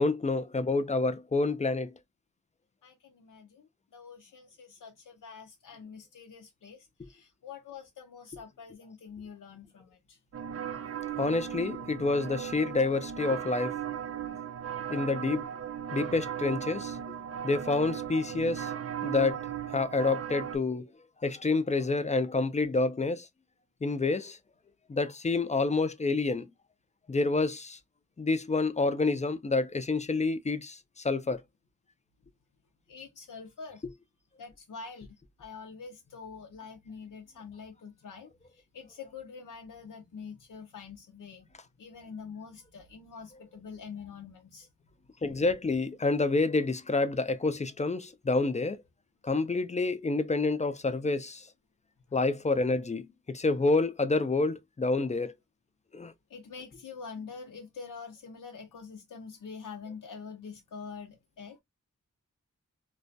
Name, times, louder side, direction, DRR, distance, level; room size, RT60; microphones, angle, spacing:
voice 1, 0.0-1.9 11.2-13.8 14.9-15.5 15.9-17.0 17.4-18.7 19.0-19.4 19.7-20.9 21.2-23.3 23.8-24.4 24.9-26.5 27.1-27.8 28.2-31.4 45.2-48.8 49.2-51.5 52.1-55.3 55.9-56.1, left 3 dB, 25° left, 0.3 m, -28 dB
voice 2, 2.8-10.2 32.9-33.8 34.4-41.5 41.8-44.7 56.3-61.6, left 5 dB, 90° left, 0.5 m, -45 dB
sound 1, 10.3-20.6, right 9 dB, 50° right, 0.5 m, -37 dB
2.3 x 2.1 x 2.5 m
wide cardioid pair, 60°, 31 cm